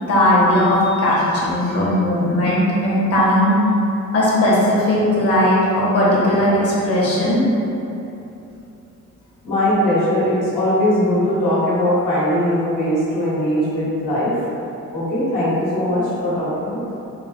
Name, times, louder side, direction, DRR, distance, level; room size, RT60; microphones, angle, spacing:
voice 1, 0.1-3.5 4.1-7.4, left 1 dB, 50° left, -7 dB, 1.0 m, -17 dB
voice 2, 9.4-14.3 14.9-16.8, left 1 dB, 75° left, -10 dB, 1.3 m, -20 dB
4.2 x 2.0 x 4.0 m, 2.9 s
wide cardioid pair, 170°, 31 cm